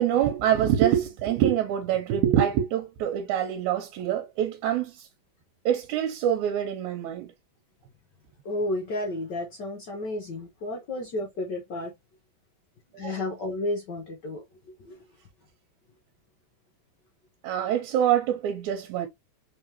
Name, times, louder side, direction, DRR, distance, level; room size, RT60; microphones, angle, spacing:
voice 1, 0.0-5.1 5.7-7.3 12.9-13.2 17.4-19.1, right 10 dB, 80° right, 2.1 m, -25 dB
voice 2, 8.4-11.9 13.0-14.4 14.8-15.0, left 1 dB, 70° left, 1.0 m, -32 dB
4.2 x 3.6 x 2.9 m
omnidirectional pair, 3.4 m